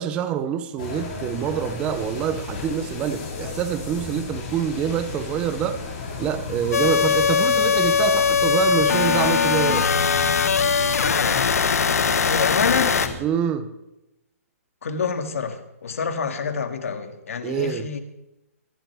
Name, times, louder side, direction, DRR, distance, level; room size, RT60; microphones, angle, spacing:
voice 1, 0.0-5.8 6.2-9.9 13.2-13.7 17.4-17.9, right 9 dB, 10° right, 0.6 m, -26 dB
sound 1, 0.8-13.1, left 4 dB, 35° left, 6.7 m, -33 dB
sound 2, 6.7-13.1, left 6 dB, 80° left, 1.3 m, -20 dB
voice 2, 12.2-12.9 14.8-18.0, left 5 dB, 65° left, 2.1 m, -27 dB
23.0 x 13.0 x 3.5 m
hypercardioid pair, 170°, 8 cm